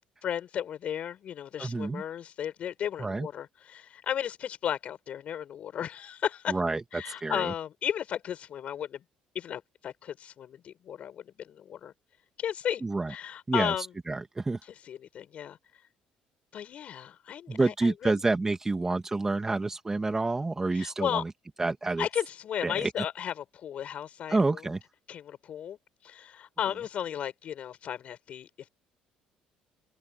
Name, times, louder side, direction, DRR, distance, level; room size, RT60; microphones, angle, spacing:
voice 1, 0.2-6.6 6.9-9.0 9.3-11.9 12.4-12.8 13.1-13.9 14.9-15.6 16.5-18.1 20.7-21.2 22.0-24.4 25.1-25.8 26.0-28.5, left 9 dB, 55° left, 6.8 m, -34 dB
voice 2, 1.6-2.0 3.0-3.3 6.5-7.5 12.8-13.1 13.5-13.7 14.1-14.6 17.5-21.3 21.6-22.1 22.6-22.9 24.3-24.8, right 3 dB, 20° right, 2.2 m, -28 dB
open air
cardioid pair, 100°, 3 cm